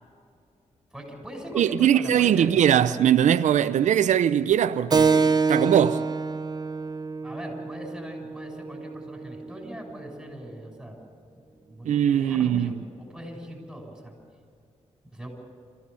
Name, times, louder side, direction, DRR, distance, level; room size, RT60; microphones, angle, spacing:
voice 1, 0.9-2.5 7.2-11.0 11.3-14.1 15.0-15.3, equal, 5° right, 6.9 m, -40 dB
voice 2, 1.5-6.0 11.8-12.7, right 9 dB, 85° right, 0.5 m, -21 dB
Keyboard (musical), 4.9-10.0, right 4 dB, 35° right, 0.7 m, -26 dB
25.0 x 15.5 x 7.0 m
cardioid pair, 75°, 12 cm